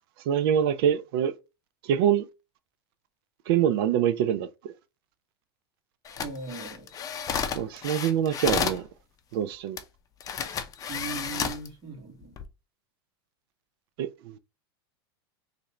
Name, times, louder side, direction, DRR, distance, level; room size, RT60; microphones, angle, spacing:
voice 1, 0.2-1.3 1.8-2.3 3.5-4.7 7.5-8.9 9.3-9.8 14.0-14.4, right 9 dB, 65° right, 0.4 m, -25 dB
sound 1, 6.0-8.8 9.8-9.9 10.2-11.7 12.2-12.4, left 7 dB, 25° left, 0.6 m, -31 dB
voice 2, 6.2-6.9 10.9-12.4, right 3 dB, 35° right, 1.7 m, -39 dB
4.0 x 2.6 x 3.1 m
supercardioid pair, 130°, 14 cm